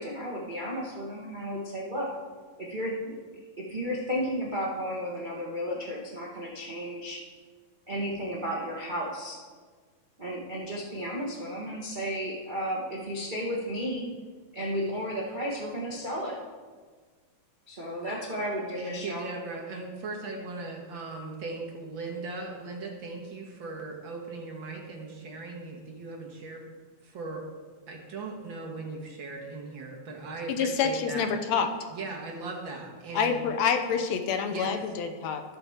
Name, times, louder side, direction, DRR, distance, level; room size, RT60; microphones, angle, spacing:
voice 1, 0.0-2.1 2.6-3.1 3.6-7.2 7.9-9.4 10.2-14.1 14.5-16.4 17.7-19.3, equal, 70° right, -4 dB, 0.4 m, -33 dB
voice 2, 18.7-26.7 27.0-27.5 27.9-31.3 31.9-33.4 34.5-34.8, right 3 dB, 50° right, 0 dB, 1.8 m, -38 dB
voice 3, 30.5-31.7 33.1-35.4, left 6 dB, 75° left, 6 dB, 1.9 m, -27 dB
17.0 x 7.0 x 3.6 m, 1.5 s
omnidirectional pair, 3.4 m